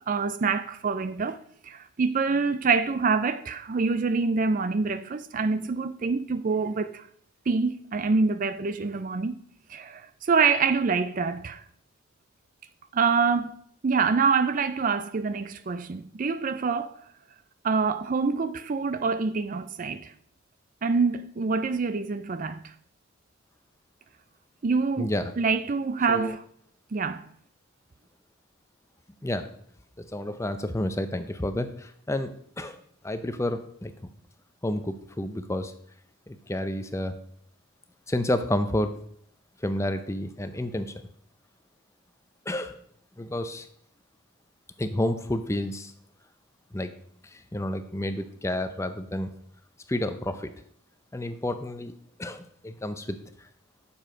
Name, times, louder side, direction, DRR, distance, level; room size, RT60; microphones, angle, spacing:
voice 1, 0.1-1.4 1.6-7.1 7.5-9.4 9.7-11.6 12.9-13.5 13.8-17.0 17.6-20.1 20.8-22.7 24.6-26.4 26.9-27.2, right 4 dB, 35° right, 0.4 m, -26 dB
voice 2, 25.0-25.3 26.1-26.3 29.2-29.5 30.0-33.9 34.6-35.7 36.3-37.2 38.1-39.0 39.6-40.9 42.5-42.8 43.2-43.7 44.8-45.9 46.7-46.9 47.2-49.3 49.9-50.5 51.1-51.9 52.2-53.2, left 1 dB, 15° left, 0.5 m, -30 dB
9.1 x 7.1 x 4.9 m
head